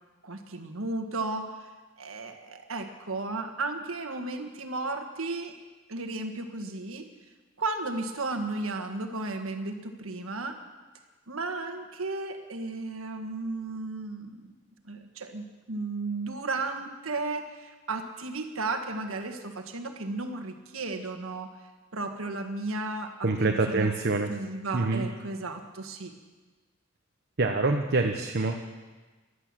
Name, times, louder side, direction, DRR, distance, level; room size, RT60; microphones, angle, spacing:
voice 1, 0.2-1.7 2.0-5.6 5.9-7.1 7.6-10.6 11.3-14.5 14.8-21.5 21.9-23.9 24.3-26.1, right 3 dB, 75° right, 5 dB, 1.6 m, -34 dB
voice 2, 23.2-24.3 24.7-25.1 27.4-28.6, right 3 dB, 50° right, 3 dB, 1.0 m, -25 dB
15.0 x 11.5 x 7.5 m, 1.3 s
head